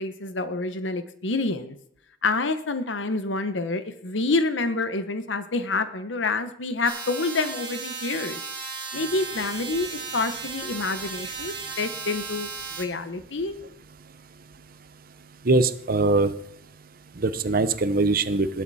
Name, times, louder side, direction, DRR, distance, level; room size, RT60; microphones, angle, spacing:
voice 1, 0.0-1.8 2.2-8.4 8.9-13.5, left 3 dB, 85° left, 10 dB, 1.1 m, -28 dB
sound 1, 6.9-12.9, right 5 dB, 25° right, 2.1 m, -35 dB
voice 2, 15.4-16.3 17.2-18.6, right 3 dB, 55° right, 13 dB, 0.8 m, -22 dB
19.5 x 8.1 x 4.2 m, 0.71 s
head